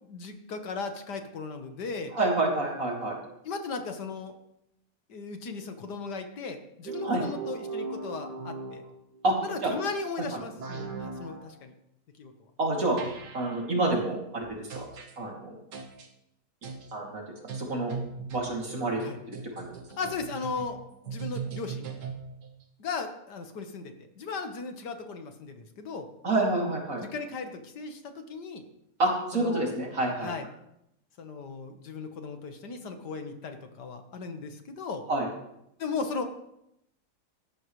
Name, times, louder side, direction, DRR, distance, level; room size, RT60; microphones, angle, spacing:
voice 1, 0.0-2.1 3.4-4.3 5.1-8.8 9.4-11.7 12.2-12.3 19.0-19.2 20.0-20.8 21.0-21.9 22.8-26.1 27.0-28.6 29.3-29.7 30.2-30.5 31.2-35.0 35.8-36.2, left 4 dB, 80° left, 6 dB, 1.9 m, -37 dB
voice 2, 2.1-3.2 7.0-7.2 9.2-9.4 9.6-9.7 12.6-13.0 13.3-14.8 15.2-15.6 16.9-17.2 17.5-17.9 18.3-19.7 26.2-27.0 29.0-30.3 35.1-35.3, right 2 dB, 55° right, -1 dB, 3.2 m, -28 dB
sound 1, 6.9-9.2 10.6-11.5 13.0-13.6 14.7-15.1 15.7-16.1 16.6-16.9 17.5-22.5, right 5 dB, 80° right, 2.0 m, -38 dB
17.5 x 13.0 x 3.2 m, 0.80 s
omnidirectional pair, 1.8 m